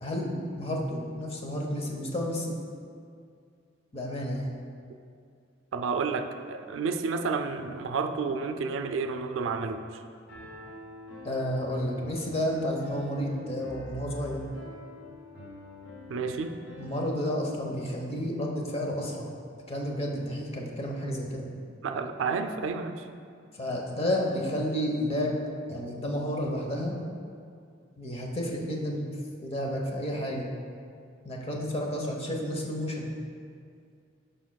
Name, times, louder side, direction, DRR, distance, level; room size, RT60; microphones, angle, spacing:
voice 1, 0.0-2.5 3.9-4.5 11.2-14.5 16.8-19.3 19.7-21.5 23.5-25.4 25.7-26.9 28.0-29.0 29.4-30.5 31.2-33.1, equal, 30° left, -1 dB, 0.9 m, -31 dB
voice 2, 5.7-10.0 16.1-16.6 21.8-23.0, right 4 dB, 90° right, 8 dB, 0.4 m, -30 dB
Piano, 10.3-17.1, equal, 65° left, 1.2 m, -46 dB
12.0 x 5.2 x 2.3 m, 2.3 s
head